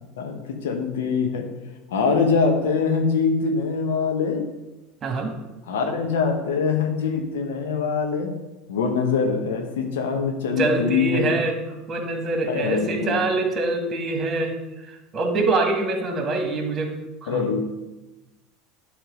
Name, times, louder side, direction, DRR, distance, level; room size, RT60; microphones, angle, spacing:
voice 1, 0.2-1.5 1.9-4.5 5.7-8.4 8.7-11.3 12.5-13.2 17.3-17.6, left 5 dB, 75° left, 4 dB, 1.0 m, -23 dB
voice 2, 5.0-5.3 10.6-11.5 11.9-14.5 14.9-16.9 17.2-17.4, right 3 dB, 35° right, 4 dB, 1.6 m, -24 dB
10.0 x 3.6 x 5.0 m, 1.0 s
hypercardioid pair, 80°, 0 cm